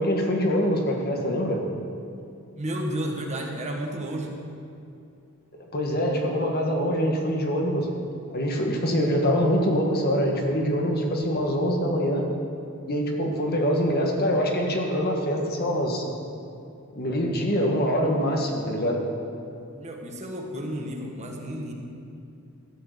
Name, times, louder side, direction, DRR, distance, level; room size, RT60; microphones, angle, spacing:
voice 1, 0.0-1.6 5.7-7.9 8.3-12.2 12.9-16.0 16.9-19.0, equal, 45° left, 1 dB, 1.7 m, -24 dB
voice 2, 2.6-4.3 19.8-21.7, right 1 dB, 30° right, 1 dB, 1.5 m, -32 dB
14.0 x 8.9 x 6.8 m, 2.6 s
head